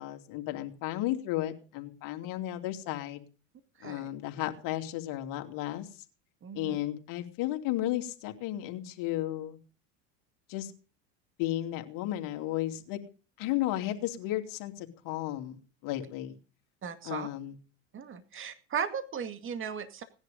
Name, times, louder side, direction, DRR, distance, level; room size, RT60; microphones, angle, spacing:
voice 1, 0.0-3.2 3.8-5.9 6.5-9.6 10.5-10.7 11.4-13.0 13.4-16.4 17.0-17.6, left 14 dB, 65° left, 5 dB, 2.9 m, -34 dB
voice 2, 6.4-6.8 16.8-17.3 17.9-20.0, right 7 dB, 35° right, 9 dB, 2.1 m, -36 dB
18.5 x 10.5 x 5.2 m, 0.37 s
supercardioid pair, 95°, 36 cm